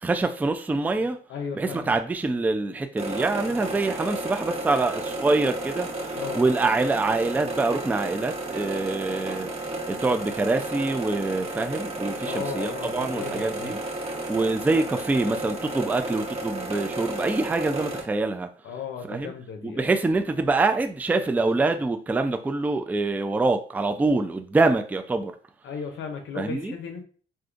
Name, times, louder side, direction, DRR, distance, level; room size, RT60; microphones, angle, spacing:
voice 1, 0.0-1.2 1.5-9.5 9.9-13.8 14.3-18.5 19.1-19.3 19.6-25.3 26.4-26.7, right 3 dB, 10° right, 0.3 m, -25 dB
voice 2, 1.3-1.9 6.2-6.4 12.3-13.7 18.6-19.8 25.6-27.0, left 6 dB, 75° left, 0.6 m, -35 dB
sound 1, 3.0-18.0, right 2 dB, 30° right, 1.0 m, -32 dB
3.6 x 2.5 x 2.4 m
cardioid pair, 90°, 20 cm